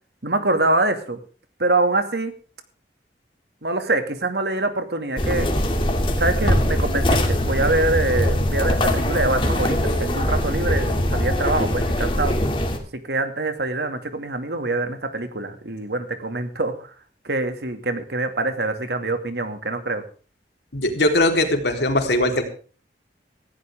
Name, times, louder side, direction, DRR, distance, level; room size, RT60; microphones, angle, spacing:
voice 1, 0.2-1.2 1.6-2.3 3.6-5.5 6.2-12.4 12.9-16.9 17.2-20.0, right 2 dB, 75° right, 7 dB, 2.3 m, -24 dB
sound 1, 5.2-12.8, left 1 dB, 30° left, 2.7 m, -22 dB
voice 2, 20.7-22.4, left 1 dB, 80° left, 3 dB, 3.8 m, -20 dB
18.0 x 15.5 x 3.7 m, 0.39 s
head